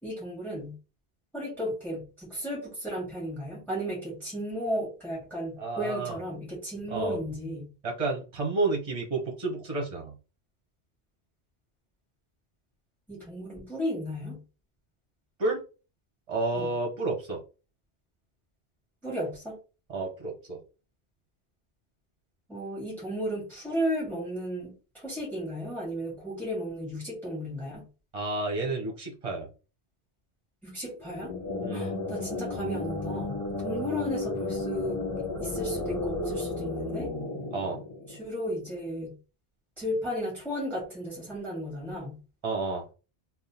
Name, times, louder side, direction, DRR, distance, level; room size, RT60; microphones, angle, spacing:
voice 1, 0.0-0.8 1.3-7.7 13.1-14.4 16.5-16.7 19.0-19.6 22.5-27.9 30.6-31.3 31.7-35.0 35.4-37.1 38.1-39.2 39.8-42.2, equal, ahead, -5 dB, 2.0 m, -34 dB
voice 2, 5.6-6.2 6.9-7.2 7.8-10.1 15.4-15.6 16.3-17.4 19.9-20.6 28.1-29.5 31.6-32.0 37.5-37.8 42.4-42.8, right 3 dB, 35° right, 1 dB, 1.0 m, -30 dB
sound 1, 31.0-38.6, left 2 dB, 20° left, 1.1 m, -33 dB
3.6 x 2.2 x 4.2 m, 0.33 s
omnidirectional pair, 1.1 m